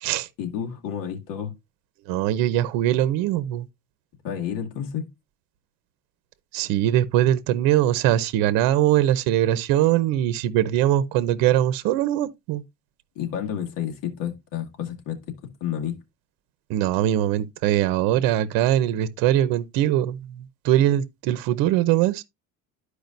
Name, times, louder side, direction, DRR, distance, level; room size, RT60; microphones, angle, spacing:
voice 1, 0.4-1.5 4.2-5.1 13.2-15.2 15.6-16.0, left 9 dB, 70° left, 2.1 m, -30 dB
voice 2, 2.1-3.7 6.5-12.6 16.7-22.2, right 12 dB, 80° right, 0.8 m, -22 dB
12.0 x 4.9 x 2.5 m
cardioid pair, 130°, 35 cm